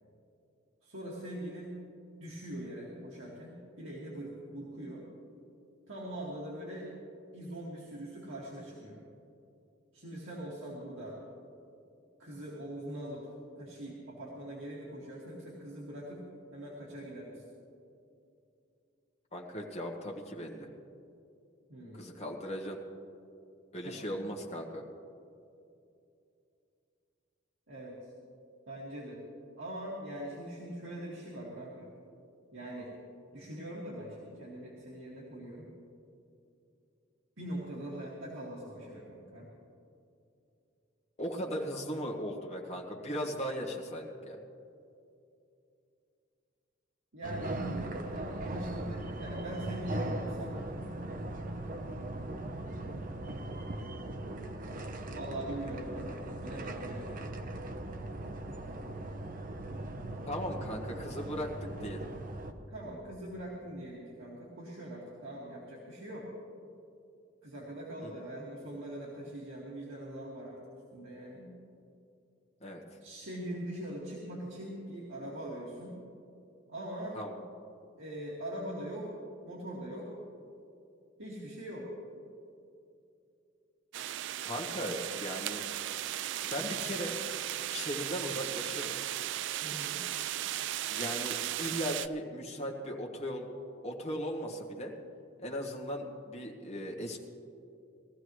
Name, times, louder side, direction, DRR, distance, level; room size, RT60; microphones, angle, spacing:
voice 1, 0.8-1.8 2.2-5.1 5.9-6.9 7.3-9.0 9.9-11.2 12.2-13.3 13.5-16.2 16.5-17.4 21.7-22.2 23.8-24.2 27.7-28.1 28.7-29.2 29.6-31.9 32.5-32.9 33.3-35.7 37.4-39.5 47.1-50.6 55.1-57.1 62.7-66.3 67.4-70.6 70.9-71.6 73.0-76.0 76.7-77.2 78.0-79.1 79.4-80.1 81.2-81.9 89.6-90.1, right 1 dB, 80° right, -6 dB, 2.2 m, -42 dB
voice 2, 19.3-20.7 21.9-22.8 23.7-24.8 41.2-44.4 60.2-62.1 68.0-68.1 72.6-72.8 77.1-77.4 84.4-85.6 86.4-87.1 87.7-88.9 90.9-93.5 93.8-94.9 95.4-97.2, equal, 35° left, 0 dB, 1.7 m, -38 dB
sound 1, 47.2-62.5, right 1 dB, 45° right, 0.8 m, -39 dB
sound 2, 83.9-92.1, right 13 dB, 65° right, 0.3 m, -36 dB
20.5 x 14.5 x 3.2 m, 2.6 s
head